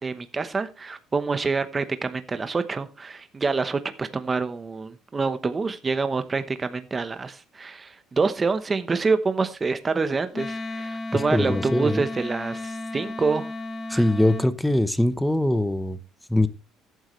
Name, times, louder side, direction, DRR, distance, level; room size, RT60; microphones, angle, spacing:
voice 1, 0.0-13.5 13.9-14.0, right 4 dB, 25° right, 0.9 m, -27 dB
Wind instrument woodwind instrument, 10.3-14.5, left 2 dB, 30° left, 1.4 m, -34 dB
voice 2, 11.1-12.0 13.9-16.0 16.3-16.5, left 1 dB, 5° left, 0.9 m, -22 dB
14.5 x 9.2 x 3.2 m
cardioid pair, 115°, 0 cm